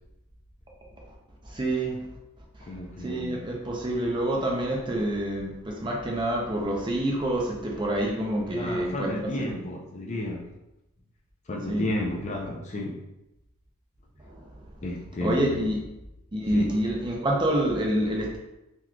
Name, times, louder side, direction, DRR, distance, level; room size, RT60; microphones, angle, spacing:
voice 1, 1.5-2.0 3.0-9.1 11.7-11.8 14.3-14.4 15.2-15.8 16.3-18.4, right 1 dB, 20° right, -1 dB, 0.5 m, -27 dB
voice 2, 2.6-3.5 4.9-5.0 8.5-10.5 11.5-13.0 14.8-15.7 16.5-16.8, left 1 dB, 30° left, 0 dB, 0.4 m, -32 dB
3.8 x 3.0 x 2.3 m, 0.92 s
head